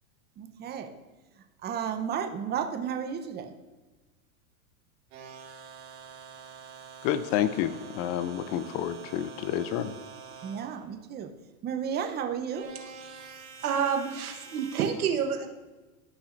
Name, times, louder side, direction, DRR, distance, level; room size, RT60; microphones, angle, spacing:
voice 1, 0.4-0.9 1.6-3.5 10.4-11.3 11.6-12.7, right 8 dB, 25° right, 5 dB, 0.7 m, -33 dB
sound 1, 5.1-10.8 12.5-14.9, right 5 dB, 65° right, 3.0 m, -46 dB
voice 2, 7.0-9.9, left 10 dB, 40° left, 13 dB, 0.5 m, -29 dB
voice 3, 13.6-15.5, right 7 dB, 90° right, 5 dB, 1.3 m, -29 dB
14.5 x 5.8 x 2.6 m, 1.2 s
hypercardioid pair, 125°, 43 cm